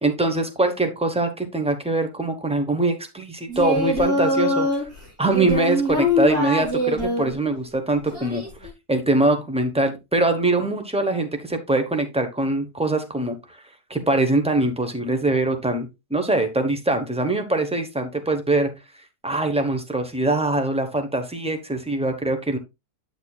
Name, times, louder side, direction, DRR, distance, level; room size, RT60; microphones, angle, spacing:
voice 1, 0.0-4.9 5.2-8.4 8.9-13.4 13.9-18.7 19.2-22.6, right 2 dB, 5° right, 6 dB, 0.7 m, -23 dB
Singing, 3.5-4.8 5.3-7.3 8.1-8.7, left 1 dB, 65° right, 3.7 m, -23 dB
8.9 x 6.6 x 2.3 m, 0.23 s
omnidirectional pair, 1.6 m